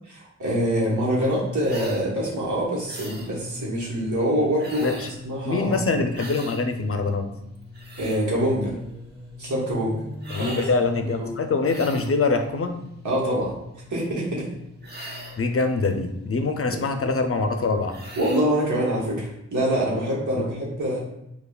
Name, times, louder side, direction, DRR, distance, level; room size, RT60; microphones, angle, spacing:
voice 1, 0.1-4.9 5.2-6.0 8.0-8.8 9.4-10.0 10.4-10.6 11.2-11.3 13.0-13.5 13.9-14.5 16.7-16.8 18.2-21.0, equal, 90° right, -4 dB, 1.1 m, -25 dB
sound 1, 1.1-18.3, left 3 dB, 20° right, 1.4 m, -44 dB
sound 2, 1.7-2.0 2.9-3.3 4.6-5.2 6.1-6.6 7.5-8.2 10.2-10.7 11.6-12.2 14.8-15.5 17.9-18.5, right 1 dB, 35° right, 0.8 m, -39 dB
voice 2, 5.4-7.3 10.3-12.8 15.4-17.9 20.4-20.5, left 3 dB, 50° left, 6 dB, 0.5 m, -24 dB
5.4 x 2.3 x 2.3 m, 0.82 s
wide cardioid pair, 45°, 29 cm